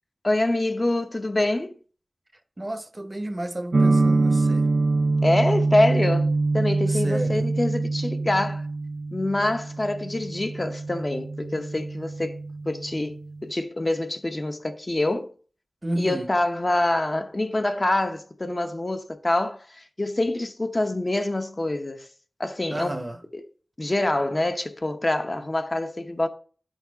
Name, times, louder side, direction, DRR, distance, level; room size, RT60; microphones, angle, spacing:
voice 1, 0.2-1.8 5.2-8.7 9.1-12.4 12.7-15.3 15.9-22.1 22.4-23.0 23.3-23.4 23.8-26.3, left 1 dB, 35° left, 0.8 m, -25 dB
voice 2, 2.6-4.7 6.9-7.4 15.8-16.3 22.7-23.2, right 1 dB, 30° right, 0.8 m, -31 dB
sound 1, 3.7-13.5, right 3 dB, 70° right, 0.5 m, -25 dB
10.0 x 4.1 x 4.7 m
wide cardioid pair, 85°, 0 cm